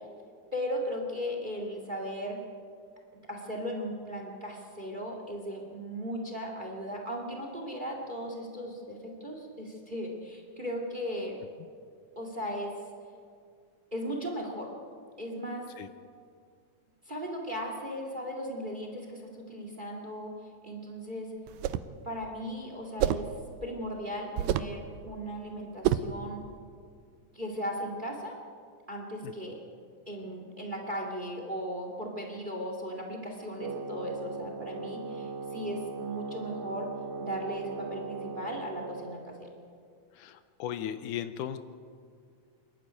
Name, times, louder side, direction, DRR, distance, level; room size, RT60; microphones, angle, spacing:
voice 1, 0.5-2.4 3.3-11.4 12.2-12.8 13.9-14.7 15.2-15.7 17.1-20.3 20.6-21.3 22.0-23.3 23.6-26.4 27.3-28.4 28.9-29.6 30.1-36.9 37.2-39.5, equal, 15° right, 2 dB, 2.1 m, -37 dB
sound 1, 21.5-22.0 23.0-23.3 24.4-24.8 25.8-26.2, right 11 dB, 90° right, 2.3 m, -28 dB
Wind instrument woodwind instrument, 33.6-39.3, right 4 dB, 55° right, 1.8 m, -39 dB
voice 2, 40.2-41.6, left 10 dB, 80° left, 10 dB, 2.2 m, -36 dB
27.5 x 12.0 x 9.5 m, 2.2 s
omnidirectional pair, 3.8 m